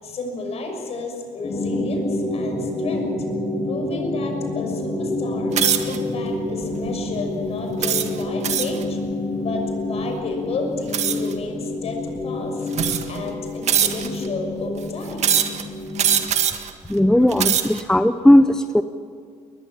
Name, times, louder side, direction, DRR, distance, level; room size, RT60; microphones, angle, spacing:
voice 1, 0.0-3.2 3.7-5.5 5.9-9.0 9.4-12.7 13.0-15.4, left 3 dB, 55° left, 3 dB, 6.3 m, -32 dB
sound 1, 1.4-16.3, left 2 dB, 30° left, 3.4 m, -28 dB
sound 2, 5.5-6.0 6.6-6.9 7.8-8.8 10.9-11.3 12.2-12.3 12.7-13.2 13.7-14.3 15.2-15.6 16.0-16.7 17.2-17.8, right 9 dB, 60° right, 1.8 m, -22 dB
voice 2, 16.9-18.8, left 1 dB, 5° left, 10 dB, 0.7 m, -16 dB
21.0 x 21.0 x 7.4 m, 2.3 s
cardioid pair, 115°, 13 cm